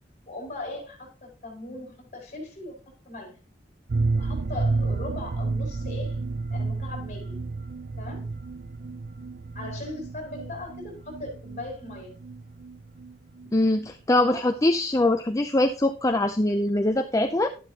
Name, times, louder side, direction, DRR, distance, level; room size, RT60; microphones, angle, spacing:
voice 1, 0.3-2.8 3.1-3.3 4.1-6.2 6.5-7.4 8.0-8.2 9.5-12.2 14.1-14.4, left 2 dB, 40° left, 1 dB, 5.9 m, -39 dB
sound 1, 3.9-13.5 13.8-13.9 14.1-14.2, right 3 dB, 55° right, 0.5 m, -31 dB
voice 2, 13.5-17.5, left 1 dB, 20° left, 7 dB, 0.5 m, -23 dB
12.0 x 11.0 x 2.9 m, 0.35 s
head